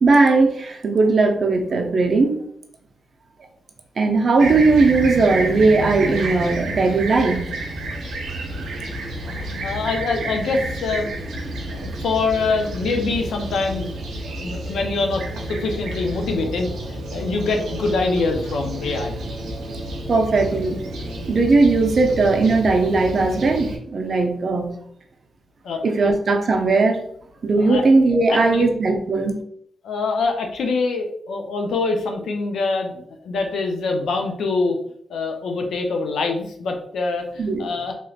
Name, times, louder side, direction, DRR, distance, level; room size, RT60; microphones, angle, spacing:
voice 1, 0.0-2.4 4.0-7.5 20.1-20.8 21.3-24.8 25.8-27.0 27.4-29.4 37.4-37.7, right 3 dB, 55° right, 4 dB, 0.6 m, -18 dB
Fixed-wing aircraft airplane, 4.4-23.8, right 2 dB, 90° right, 0.7 m, -30 dB
voice 2, 9.2-11.1 11.7-14.0 14.2-16.7 17.1-19.1 25.6-25.9 27.6-27.8 28.3-28.7 29.8-32.9 33.2-34.8 35.1-37.9, left 3 dB, 85° left, 3 dB, 0.5 m, -24 dB
3.1 x 3.0 x 2.3 m, 0.66 s
cardioid pair, 65°, 0 cm